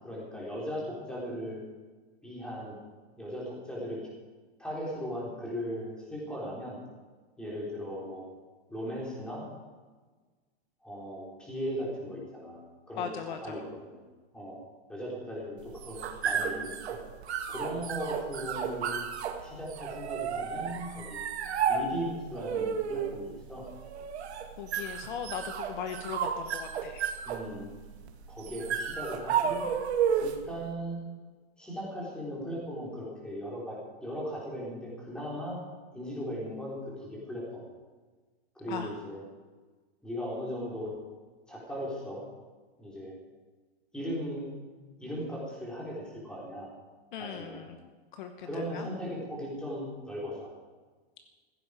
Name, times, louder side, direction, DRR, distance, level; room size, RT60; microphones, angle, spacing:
voice 1, 0.0-1.6 2.2-2.8 3.2-4.0 4.6-6.8 7.4-8.3 8.7-9.4 10.8-14.0 14.3-14.6 14.9-17.0 17.5-19.0 19.4-21.2 21.7-23.7 27.2-27.7 28.3-29.6 30.2-31.0 31.6-35.6 35.9-37.6 38.6-39.2 40.0-40.9 41.5-42.3 42.8-43.1 43.9-44.5 45.0-46.7 47.2-47.7 48.4-50.5, equal, 5° left, -5 dB, 3.6 m, -38 dB
voice 2, 13.0-13.6 24.6-27.0 38.7-38.9 47.1-47.8 48.1-48.9, left 7 dB, 45° left, 7 dB, 1.1 m, -38 dB
sound 1, 15.6-30.5, right 7 dB, 75° right, 2.0 m, -33 dB
16.5 x 15.5 x 5.0 m, 1.4 s
supercardioid pair, 175°, 33 cm